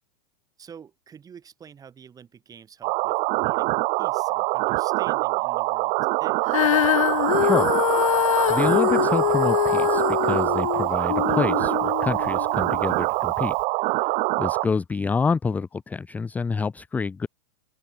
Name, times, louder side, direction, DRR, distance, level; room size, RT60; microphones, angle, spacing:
voice 1, 0.6-3.7 4.0-5.9 6.2-6.5, right 7 dB, 20° right, 3.0 m, -47 dB
sound 1, 2.8-14.7, right 25 dB, 40° right, 0.6 m, -24 dB
Female singing, 6.5-12.8 13.5-13.6, left 13 dB, 80° left, 1.1 m, -24 dB
voice 2, 8.5-13.5 14.0-17.3, left 5 dB, 10° left, 0.4 m, -27 dB
open air
hypercardioid pair, 125°, 17 cm